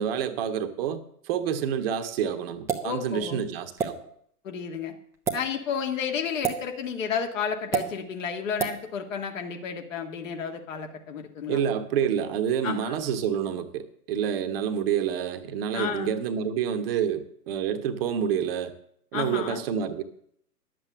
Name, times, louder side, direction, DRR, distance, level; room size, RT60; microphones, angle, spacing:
voice 1, 0.0-3.9 11.5-18.7 19.1-20.0, right 8 dB, 35° right, 1.1 m, -28 dB
sound 1, 2.7-2.9 3.8-3.9 5.1-5.4 6.4-6.6 7.7-7.9 8.6-8.8, right 8 dB, 5° right, 0.5 m, -26 dB
voice 2, 2.8-3.4 4.4-4.9 5.3-11.6 12.6-13.0 15.7-16.1 19.1-19.6, left 7 dB, 50° left, 2.0 m, -32 dB
11.0 x 7.8 x 6.8 m
figure-of-eight pair, 115°, 47 cm